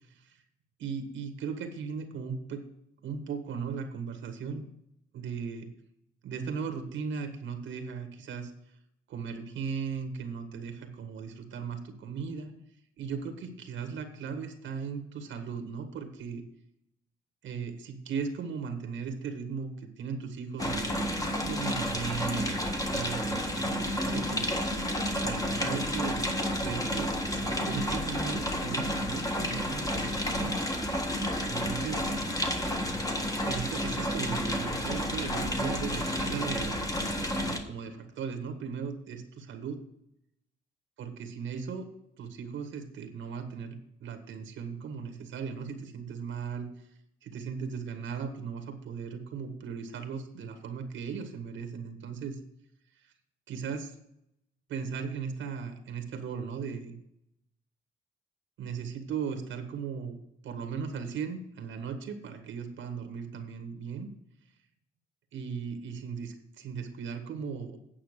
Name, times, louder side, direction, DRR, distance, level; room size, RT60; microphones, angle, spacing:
voice 1, 0.1-0.4 0.8-2.6 3.0-4.6 5.1-5.7 6.2-8.5 9.1-12.5 13.0-16.4 17.4-21.0 21.4-24.5 25.2-26.3 26.6-30.6 31.5-32.0 33.4-36.9 37.4-39.8 41.0-41.9 42.2-46.7 47.2-52.4 52.9-53.1 53.5-53.9 54.7-57.0 58.6-60.2 60.4-64.1 65.3-67.8, right 6 dB, 75° right, 7 dB, 1.5 m, -37 dB
sound 1, 20.6-37.6, equal, 15° left, 1.5 m, -31 dB
9.1 x 5.7 x 6.7 m, 0.76 s
cardioid pair, 90°, 20 cm